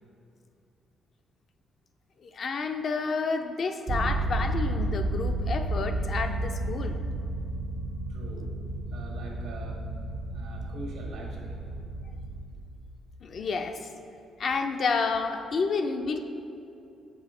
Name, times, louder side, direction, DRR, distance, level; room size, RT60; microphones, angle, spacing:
voice 1, 2.2-7.0 13.2-13.9 14.4-16.2, left 4 dB, 55° left, 6 dB, 0.5 m, -30 dB
sound 1, 3.9-12.4, right 2 dB, 60° right, 0.6 m, -32 dB
voice 2, 8.1-8.6 8.9-9.9 10.3-11.6, right 1 dB, 90° right, -1 dB, 1.3 m, -43 dB
7.0 x 5.5 x 3.7 m, 2.6 s
cardioid pair, 90°, 0 cm